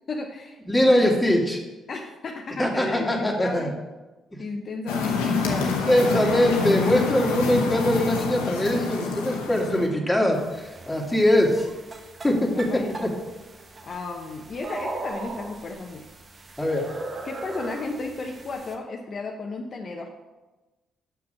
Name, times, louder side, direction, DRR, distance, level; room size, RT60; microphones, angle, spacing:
voice 1, 0.1-1.0 1.9-3.8 4.4-5.8 12.5-13.2 13.8-16.0 17.2-20.1, left 3 dB, 50° left, 2 dB, 0.8 m, -34 dB
voice 2, 0.7-1.6 2.6-3.7 5.9-11.7 12.2-12.7 16.6-16.9, left 1 dB, 10° left, 0 dB, 2.1 m, -22 dB
sound 1, 4.9-9.9, left 4 dB, 80° left, 1.0 m, -27 dB
sound 2, 10.3-18.7, right 3 dB, 40° right, 1.1 m, -39 dB
6.1 x 5.9 x 6.3 m, 1.1 s
hypercardioid pair, 40°, 0 cm